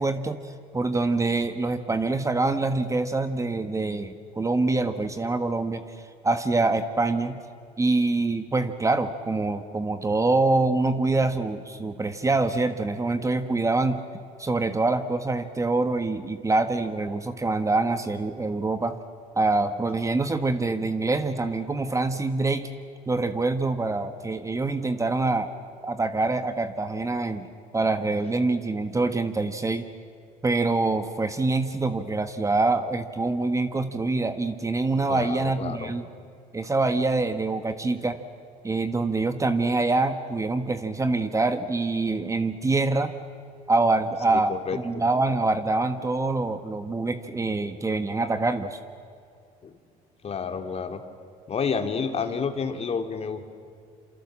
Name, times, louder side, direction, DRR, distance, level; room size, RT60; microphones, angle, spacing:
voice 1, 0.0-5.8 6.2-7.4 7.8-14.0 14.4-19.0 19.4-22.7 23.1-25.5 25.8-27.5 27.7-29.9 30.4-36.0 36.5-38.2 38.6-43.1 43.7-48.8, right 3 dB, 20° right, 9 dB, 1.4 m, -25 dB
voice 2, 35.1-35.9 44.3-45.0 49.6-49.8 50.2-51.0 51.5-53.5, left 5 dB, 40° left, 6 dB, 2.6 m, -30 dB
27.5 x 27.5 x 7.5 m, 2.3 s
supercardioid pair, 95°, 17 cm